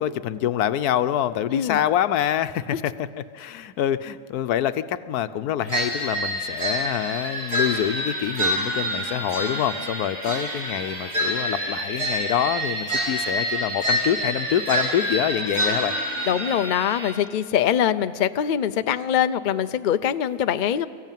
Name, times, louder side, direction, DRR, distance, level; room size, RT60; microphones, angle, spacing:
voice 1, 0.0-3.1 3.3-16.3, left 10 dB, 85° left, 12 dB, 1.2 m, -26 dB
sound 1, 5.7-17.1, equal, 80° right, 4.4 m, -27 dB
voice 2, 16.3-20.9, left 9 dB, 65° left, 11 dB, 0.4 m, -23 dB
23.0 x 15.0 x 9.1 m, 2.2 s
omnidirectional pair, 1.6 m